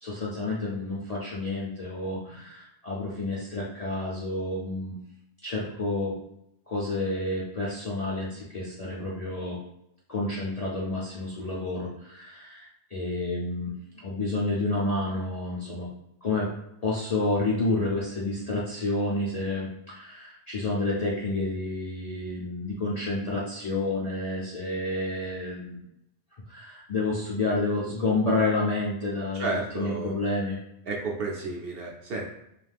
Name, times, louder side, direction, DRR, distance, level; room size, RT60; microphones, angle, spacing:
voice 1, 0.0-4.9 5.4-6.1 6.7-9.6 10.1-13.7 14.0-15.9 16.2-16.5 16.8-25.8 26.5-29.5 29.7-30.6, left 2 dB, 50° left, -6 dB, 0.5 m, -29 dB
voice 2, 29.3-30.1 30.9-32.2, right 3 dB, 65° right, -1 dB, 0.7 m, -32 dB
2.4 x 2.3 x 3.3 m, 0.80 s
omnidirectional pair, 1.2 m